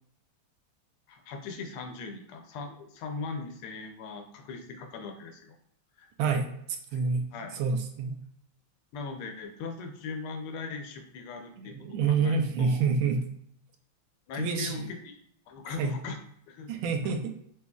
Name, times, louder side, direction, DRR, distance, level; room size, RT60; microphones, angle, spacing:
voice 1, 1.1-5.6 6.0-6.1 6.9-7.0 7.3-7.6 8.9-11.7 12.0-12.8 14.3-15.1 15.5-16.2 16.5-16.7 17.0-17.1, left 4 dB, 90° left, 4 dB, 1.6 m, -39 dB
voice 2, 6.2-6.5 6.9-7.3 7.5-8.2 11.6-13.3 14.4-14.9 15.8-15.9 16.7-17.3, right 5 dB, 80° right, 4 dB, 1.4 m, -27 dB
6.0 x 2.9 x 2.3 m, 0.70 s
omnidirectional pair, 2.3 m